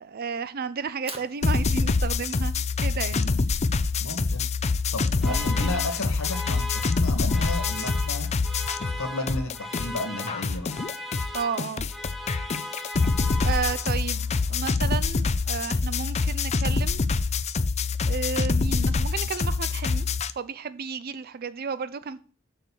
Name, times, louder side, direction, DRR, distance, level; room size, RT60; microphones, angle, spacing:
voice 1, 0.0-3.3 5.2-5.9 11.3-11.8 13.4-17.0 18.1-20.1 20.4-22.2, right 5 dB, 45° right, 0.4 m, -33 dB
Fire, 0.8-7.0, right 4 dB, 25° right, 1.4 m, -49 dB
sound 1, 1.4-9.0 9.3-20.3, left 4 dB, 30° left, 0.5 m, -25 dB
voice 2, 3.1-3.5 4.0-4.4 4.9-8.3 8.8-10.7, left 2 dB, 90° left, 1.9 m, -33 dB
sound 2, 5.2-14.2, left 1 dB, ahead, 1.1 m, -38 dB
6.8 x 6.6 x 6.2 m
head